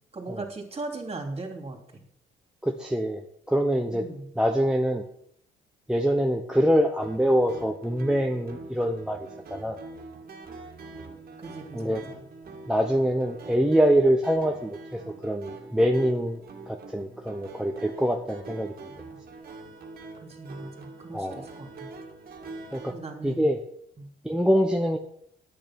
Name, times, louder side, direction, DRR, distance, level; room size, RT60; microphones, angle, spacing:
voice 1, 0.1-2.0 3.9-4.3 11.4-12.2 18.9-19.2 20.2-21.9 22.8-23.5 24.0-24.1, right 2 dB, 30° right, 3 dB, 3.1 m, -39 dB
voice 2, 2.6-3.2 3.5-4.1 4.4-5.0 5.9-9.8 11.7-12.0 12.7-16.4 16.7-18.7 21.1-21.4 22.7-22.9 23.2-23.6 24.2-25.0, equal, 5° right, 2 dB, 1.0 m, -24 dB
sound 1, 7.0-22.9, right 3 dB, 50° right, 2.1 m, -44 dB
10.5 x 8.8 x 6.1 m, 0.68 s
cardioid pair, 90°, 20 cm